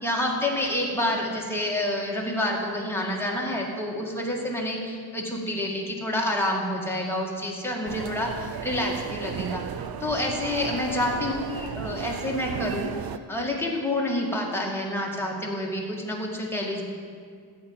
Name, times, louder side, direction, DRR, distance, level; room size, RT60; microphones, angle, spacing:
voice 1, 0.0-9.6 10.0-16.8, left 1 dB, 5° left, -2 dB, 2.2 m, -28 dB
sound 1, 7.9-13.2, right 8 dB, 60° right, 0.5 m, -35 dB
13.5 x 5.3 x 8.7 m, 2.1 s
wide cardioid pair, 85°, 42 cm